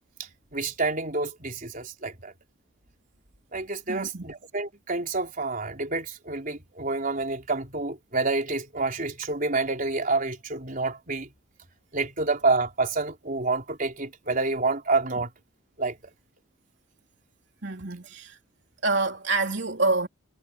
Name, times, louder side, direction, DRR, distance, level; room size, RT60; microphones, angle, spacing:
voice 1, 0.5-2.3 3.5-11.3 11.9-15.3 15.8-16.0, right 3 dB, 40° right, 4.3 m, -28 dB
voice 2, 3.9-4.3 17.6-18.4 18.8-20.1, right 3 dB, 60° right, 3.5 m, -27 dB
head